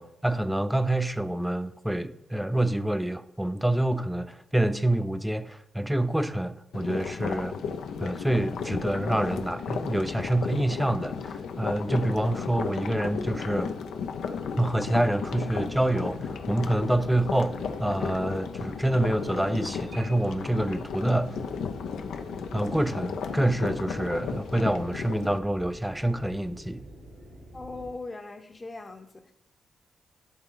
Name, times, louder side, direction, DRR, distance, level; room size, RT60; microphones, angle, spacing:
voice 1, 0.0-7.6 8.0-13.7 14.6-21.4 22.5-26.8, right 1 dB, 5° right, 0.6 m, -27 dB
sound 1, 6.7-25.4, left 6 dB, 80° left, 0.5 m, -34 dB
sound 2, 15.2-27.9, right 1 dB, 90° right, 3.0 m, -47 dB
voice 2, 27.5-29.3, left 3 dB, 35° left, 0.8 m, -40 dB
11.0 x 4.0 x 3.8 m
supercardioid pair, 50°, 0 cm